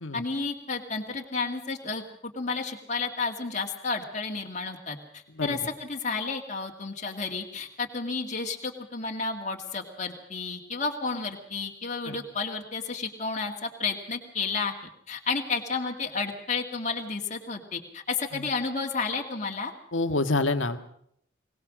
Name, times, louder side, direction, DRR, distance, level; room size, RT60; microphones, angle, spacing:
voice 1, 0.1-14.7 15.1-19.7, left 4 dB, 35° left, 1 dB, 2.2 m, -32 dB
voice 2, 19.9-20.8, left 2 dB, 80° left, 7 dB, 1.7 m, -27 dB
22.5 x 19.0 x 6.3 m, 0.68 s
head